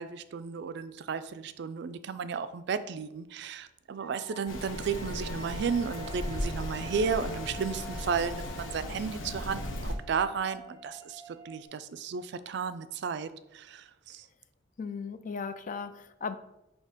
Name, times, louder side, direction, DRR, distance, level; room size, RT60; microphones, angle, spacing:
voice 1, 0.0-14.3, right 6 dB, 60° right, 12 dB, 0.3 m, -34 dB
Wind instrument woodwind instrument, 4.0-8.9, right 3 dB, 25° left, 2.0 m, -49 dB
Rain, 4.5-10.0, left 1 dB, 85° left, 0.8 m, -37 dB
sound 1, 5.6-11.6, equal, 15° right, 0.6 m, -50 dB
voice 2, 14.8-16.4, left 5 dB, 40° left, 11 dB, 0.4 m, -36 dB
6.6 x 2.8 x 4.9 m, 0.90 s
head